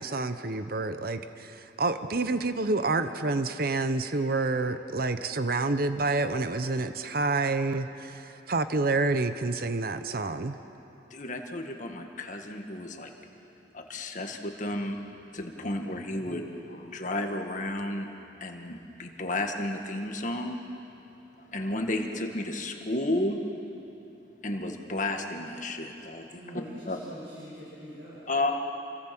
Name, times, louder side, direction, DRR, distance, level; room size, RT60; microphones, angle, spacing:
voice 1, 0.0-10.5, right 3 dB, 50° right, 10 dB, 0.8 m, -28 dB
voice 2, 11.1-13.1 13.7-15.0 15.3-18.1 18.4-20.6 21.4-23.4 24.4-26.2 26.9-27.0 28.3-28.5, left 1 dB, 40° left, 3 dB, 1.8 m, -32 dB
voice 3, 26.3-28.5, right 1 dB, 70° right, -9 dB, 6.9 m, -44 dB
29.0 x 22.0 x 6.1 m, 3.0 s
head